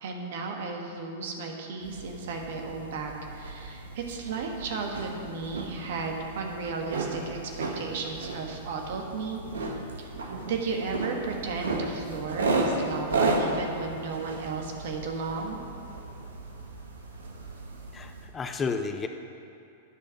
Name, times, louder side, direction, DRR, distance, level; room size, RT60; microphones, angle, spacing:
voice 1, 0.0-10.1 10.5-15.6, right 4 dB, 65° right, 2 dB, 1.4 m, -34 dB
sound 1, 1.8-18.3, right 2 dB, 80° right, 1.2 m, -34 dB
voice 2, 17.9-19.1, left 5 dB, 20° left, 7 dB, 0.6 m, -31 dB
9.4 x 5.0 x 6.9 m, 2.7 s
hypercardioid pair, 105°, 0 cm